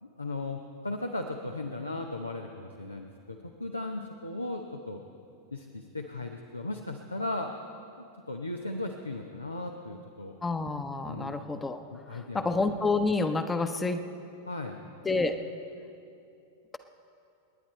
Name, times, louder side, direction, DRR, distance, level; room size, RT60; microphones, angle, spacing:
voice 1, 0.0-5.0 5.5-7.5 8.0-10.4 11.1-11.4 11.9-12.5 14.5-14.8, left 2 dB, 80° left, 3 dB, 0.9 m, -37 dB
voice 2, 10.4-11.8 12.1-14.0 15.0-15.4, left 3 dB, 15° left, 8 dB, 1.0 m, -29 dB
30.0 x 10.0 x 4.4 m, 2.6 s
figure-of-eight pair, 90°, 0 cm